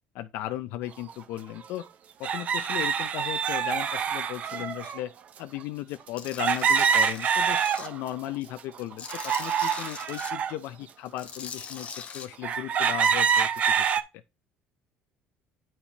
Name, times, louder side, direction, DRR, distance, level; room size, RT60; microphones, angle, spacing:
voice 1, 0.1-1.8 2.2-5.1 5.4-11.9 12.1-13.5 13.7-13.8, left 14 dB, 70° left, 0.4 m, -36 dB
sound 1, 1.1-1.2 2.2-5.0 6.4-8.1 8.6-10.5 11.2-11.3 11.9-12.0 12.4-14.0, right 7 dB, 40° right, 0.6 m, -26 dB
Tools, 6.2-7.9 8.3-10.3 11.1-12.3, left 6 dB, 35° left, 0.9 m, -41 dB
9.8 x 4.3 x 2.9 m
cardioid pair, 150°, 4 cm